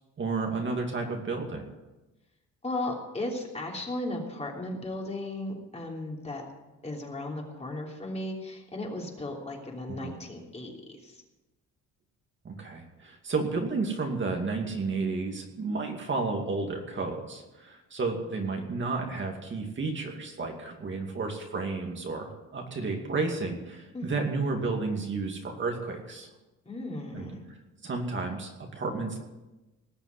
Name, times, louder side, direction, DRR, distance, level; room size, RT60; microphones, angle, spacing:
voice 1, 0.2-1.7 10.0-10.1 12.4-26.3 27.1-27.3 27.8-29.2, right 3 dB, 40° right, 2 dB, 2.5 m, -32 dB
voice 2, 2.6-6.4 6.8-11.2 23.9-24.4 26.6-27.5, left 1 dB, 20° left, -1 dB, 3.2 m, -36 dB
19.0 x 7.0 x 8.3 m, 1.1 s
cardioid pair, 120°, 30 cm